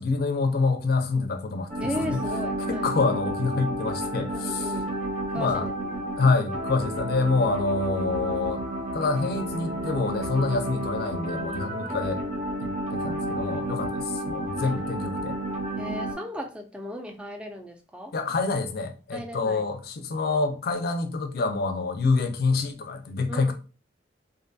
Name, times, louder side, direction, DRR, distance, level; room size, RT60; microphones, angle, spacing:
voice 1, 0.0-1.7 2.0-2.1 2.7-4.7 5.3-5.7 6.2-8.6 8.9-12.2 12.6-15.4 18.1-23.5, left 3 dB, 55° left, 0.4 m, -26 dB
sound 1, 1.7-16.1, right 1 dB, 45° right, 0.7 m, -31 dB
voice 2, 1.8-2.9 4.3-4.9 5.3-6.1 11.8-12.0 14.6-14.8 15.8-18.1 19.1-19.6 23.3-23.5, equal, 5° right, 0.3 m, -36 dB
2.5 x 2.2 x 2.6 m
head